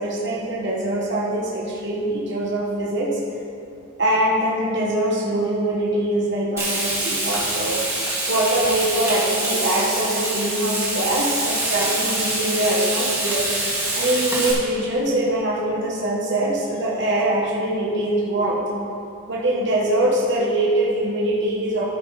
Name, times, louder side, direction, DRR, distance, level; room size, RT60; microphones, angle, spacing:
voice 1, 0.0-3.2 4.0-7.8 8.3-13.5 13.9-18.6 19.3-21.8, right 1 dB, 55° right, -4 dB, 1.3 m, -23 dB
Frying (food), 6.6-14.5, right 2 dB, 15° right, 1.9 m, -25 dB
14.0 x 5.9 x 4.1 m, 2.5 s
head